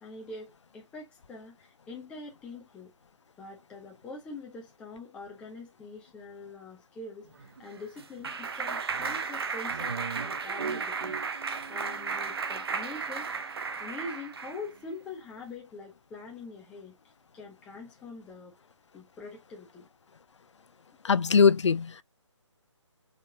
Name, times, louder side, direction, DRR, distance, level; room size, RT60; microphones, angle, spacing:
voice 1, 0.0-2.9 3.4-16.9 17.3-18.5 18.9-19.9, left 3 dB, 5° left, 0.9 m, -44 dB
Clapping, 7.4-14.7, right 5 dB, 50° right, 0.9 m, -34 dB
voice 2, 21.0-22.0, left 5 dB, 65° left, 0.5 m, -21 dB
5.1 x 3.3 x 2.6 m
figure-of-eight pair, 150°, 16 cm